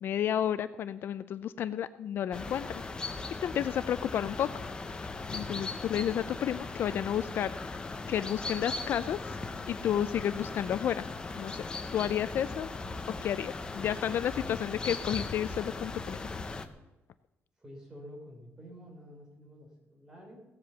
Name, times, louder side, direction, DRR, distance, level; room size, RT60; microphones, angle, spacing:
voice 1, 0.0-2.7 3.4-4.6 5.3-7.8 8.1-9.2 9.7-11.0 11.4-11.6 11.9-12.7 13.2-16.3, left 10 dB, 55° left, 14 dB, 0.4 m, -31 dB
sound 1, 2.3-16.7, left 3 dB, 20° left, 0.7 m, -38 dB
voice 2, 17.6-20.4, equal, 15° right, 0 dB, 3.4 m, -49 dB
16.0 x 7.8 x 6.9 m, 1.0 s
cardioid pair, 175°, 4 cm